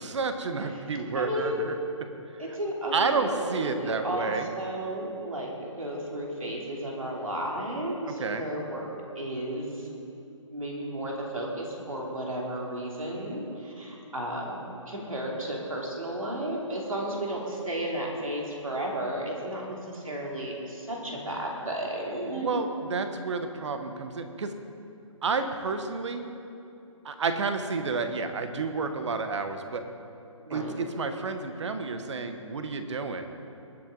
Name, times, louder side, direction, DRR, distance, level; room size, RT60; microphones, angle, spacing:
voice 1, 0.0-1.8 2.9-4.5 8.1-8.5 22.3-24.5 25.2-26.3 27.0-29.8 30.5-33.3, right 4 dB, 60° right, 7 dB, 1.2 m, -30 dB
voice 2, 1.1-1.7 2.4-3.4 3.8-8.9 9.1-9.9 10.5-22.5 30.4-30.7, right 1 dB, 90° right, -2 dB, 3.2 m, -33 dB
20.0 x 8.0 x 4.0 m, 2.7 s
figure-of-eight pair, 145°, 17 cm